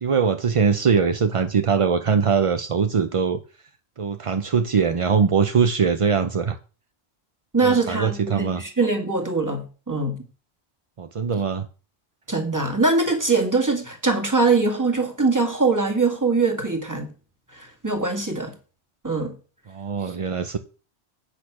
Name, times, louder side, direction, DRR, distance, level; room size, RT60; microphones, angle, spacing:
voice 1, 0.0-3.4 4.0-6.6 7.6-8.6 11.0-11.7 19.7-20.6, right 6 dB, 40° right, 0.5 m, -22 dB
voice 2, 7.5-10.2 12.3-17.1 17.5-18.6 19.0-19.4 20.0-20.2, right 3 dB, 15° right, 1.8 m, -22 dB
8.4 x 6.5 x 6.0 m
omnidirectional pair, 1.1 m